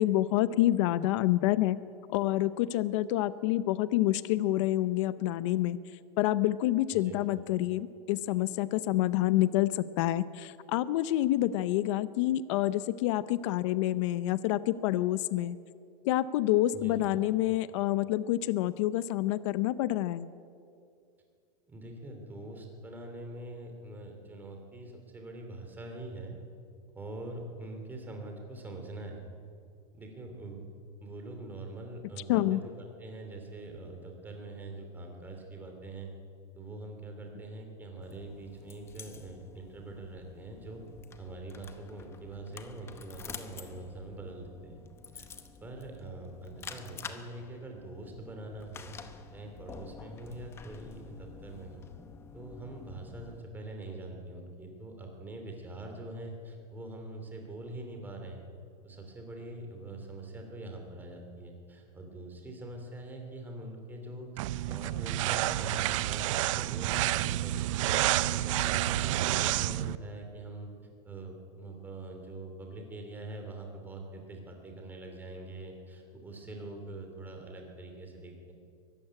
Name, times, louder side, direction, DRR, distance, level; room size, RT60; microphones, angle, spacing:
voice 1, 0.0-1.8 2.1-5.8 6.2-15.6 16.0-20.3 32.3-32.6, left 14 dB, 50° left, 15 dB, 0.7 m, -28 dB
voice 2, 6.9-7.2 16.7-17.0 21.7-26.3 26.9-29.3 29.9-30.6 31.0-36.1 36.5-40.8 41.2-44.8 45.1-45.3 45.6-49.0 49.3-51.8 52.3-58.4 58.8-67.9 68.3-70.7 71.0-78.5, right 2 dB, 10° right, 3 dB, 2.9 m, -44 dB
sound 1, 38.0-53.4, left 6 dB, 15° left, 0.8 m, -49 dB
sound 2, 64.4-70.0, right 15 dB, 55° right, 0.6 m, -29 dB
23.0 x 14.5 x 10.0 m, 2.4 s
supercardioid pair, 170°, 20 cm